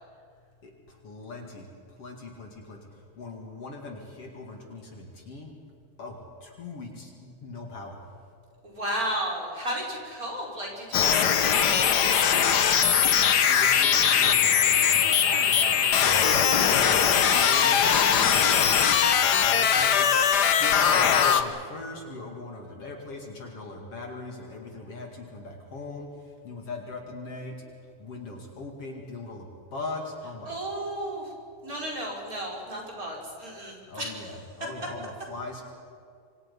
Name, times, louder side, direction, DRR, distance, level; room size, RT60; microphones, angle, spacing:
voice 1, 1.0-1.7 2.0-2.8 3.2-5.5 6.0-8.0 13.5-18.8 19.2-20.2 20.5-26.1 26.4-27.5 28.0-30.5 33.9-35.6, left 3 dB, 50° left, 1 dB, 3.2 m, -40 dB
voice 2, 8.6-13.0 30.5-31.3 31.6-34.3, right 1 dB, 25° right, -2 dB, 5.4 m, -34 dB
sound 1, 10.9-21.4, left 8 dB, 80° left, 0.9 m, -21 dB
26.5 x 26.5 x 5.5 m, 2.4 s
omnidirectional pair, 3.5 m